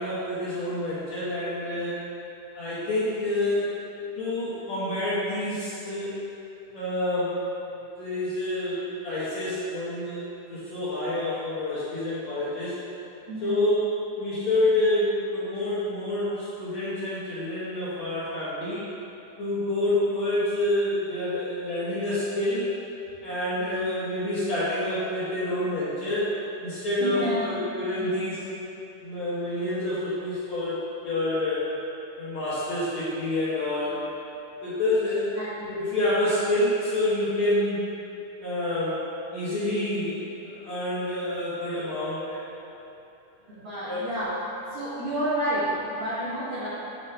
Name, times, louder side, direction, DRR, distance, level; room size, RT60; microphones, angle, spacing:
voice 1, 0.0-2.0 2.6-3.7 4.2-6.2 6.7-7.4 8.0-10.2 10.5-12.8 13.4-13.8 14.2-18.8 19.4-22.7 23.2-26.3 26.6-28.4 29.0-31.6 32.2-34.0 34.6-35.3 35.7-37.8 38.4-42.4 43.4-43.5 43.9-44.0, left 1 dB, 65° left, -12 dB, 1.8 m, -27 dB
voice 2, 13.3-13.6 23.6-23.8 27.0-27.4 28.0-28.2 35.3-35.7 43.6-44.3 44.7-46.7, equal, 85° right, -13 dB, 1.1 m, -30 dB
8.0 x 6.0 x 3.3 m, 2.8 s
omnidirectional pair, 4.9 m